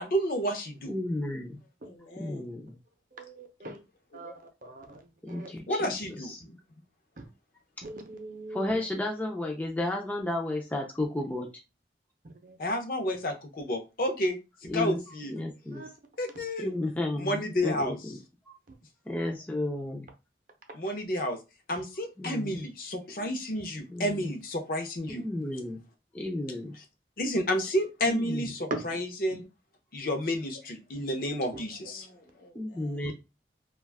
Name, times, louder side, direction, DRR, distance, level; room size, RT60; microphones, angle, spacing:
voice 1, 0.0-0.9 5.7-6.6 12.6-15.3 16.2-16.7 17.2-18.0 20.7-21.4 21.7-25.2 27.2-29.4 29.9-32.1, equal, 55° left, 0.6 m, -31 dB
voice 2, 0.9-1.6 2.2-2.7 5.2-6.4 8.5-11.5 14.7-15.0 15.3-15.8 16.6-18.2 18.5-18.6 19.1-20.1 22.2-22.6 23.9-24.2 25.1-25.8 26.1-26.7 28.1-28.5 32.6-33.1, left 1 dB, 10° left, 0.3 m, -33 dB
voice 3, 1.8-2.8 4.1-4.4 25.1-25.2 26.4-26.6 27.6-27.7 31.7-33.0, left 1 dB, 75° left, 0.9 m, -52 dB
voice 4, 3.1-3.8 4.1-4.3 4.6-5.5 7.2-7.3 7.8-8.9 12.2-12.6 14.8-14.9 15.7-15.9 18.7-18.8 23.2-23.3 28.7-28.9 31.5-31.6 33.0-33.1, right 2 dB, 50° right, 0.6 m, -40 dB
2.4 x 2.2 x 3.4 m
head